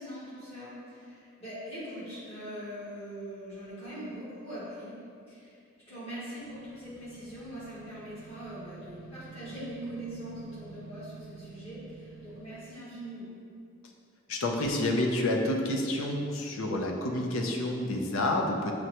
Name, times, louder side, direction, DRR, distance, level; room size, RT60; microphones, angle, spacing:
voice 1, 0.0-5.0 5.3-5.6 5.9-13.3, equal, 30° left, -11 dB, 1.4 m, -42 dB
sound 1, 6.4-12.7, right 5 dB, 75° right, 0.4 m, -49 dB
voice 2, 14.3-18.7, left 1 dB, 80° left, 2 dB, 0.5 m, -29 dB
6.1 x 2.1 x 2.8 m, 2.4 s
head